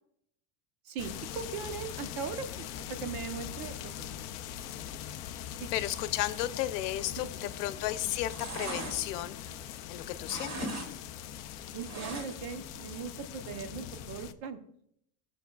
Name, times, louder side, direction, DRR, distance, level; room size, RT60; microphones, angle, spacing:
voice 1, 0.8-4.1 5.6-5.7 7.2-7.3 11.7-14.6, right 6 dB, 45° right, 8 dB, 1.0 m, -39 dB
sound 1, 1.0-14.3, left 10 dB, 35° left, 0.4 m, -42 dB
voice 2, 5.7-9.4 9.9-10.8, left 14 dB, 80° left, 11 dB, 0.9 m, -33 dB
sound 2, 7.5-7.8 8.1-9.9 10.2-10.9 11.2-12.6 12.9-13.0, right 2 dB, 90° right, 2.9 m, -40 dB
16.5 x 6.9 x 2.3 m, 0.73 s
cardioid pair, 160°, 47 cm